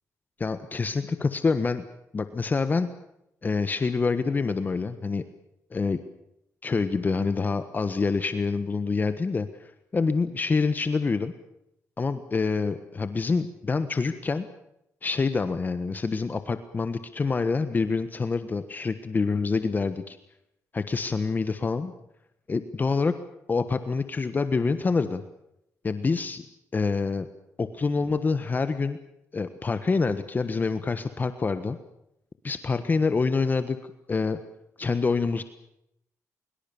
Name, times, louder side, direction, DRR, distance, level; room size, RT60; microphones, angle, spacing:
voice 1, 0.4-1.8 2.1-2.9 3.4-5.2 5.7-6.0 6.6-11.3 12.0-14.5 15.0-20.2 20.7-21.9 22.5-23.1 23.5-25.2 25.8-26.5 26.7-27.2 27.6-29.0 29.3-31.8 32.4-33.8 34.1-34.4 34.8-35.4, left 4 dB, 30° left, 10 dB, 1.4 m, -26 dB
23.5 x 23.0 x 7.1 m, 0.80 s
cardioid pair, 105°, 6 cm